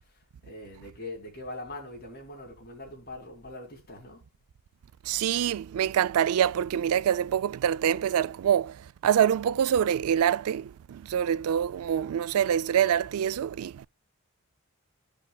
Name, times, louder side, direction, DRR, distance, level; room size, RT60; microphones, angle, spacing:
voice 1, 0.5-4.2, left 2 dB, 45° left, 2.8 m, -42 dB
voice 2, 5.1-13.9, right 9 dB, 80° right, 0.3 m, -25 dB
14.5 x 5.3 x 2.2 m
head